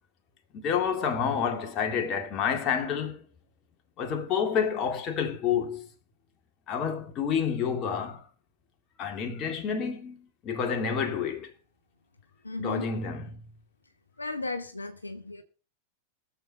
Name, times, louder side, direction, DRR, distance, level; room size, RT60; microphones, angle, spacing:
voice 1, 0.5-3.2 4.0-5.9 6.7-8.2 9.0-11.5 12.6-13.4, left 7 dB, 35° left, 2.3 m, -29 dB
voice 2, 12.4-12.9 14.2-15.4, left 2 dB, 80° left, 1.0 m, -35 dB
22.0 x 7.4 x 4.2 m
figure-of-eight pair, 90°, 0 cm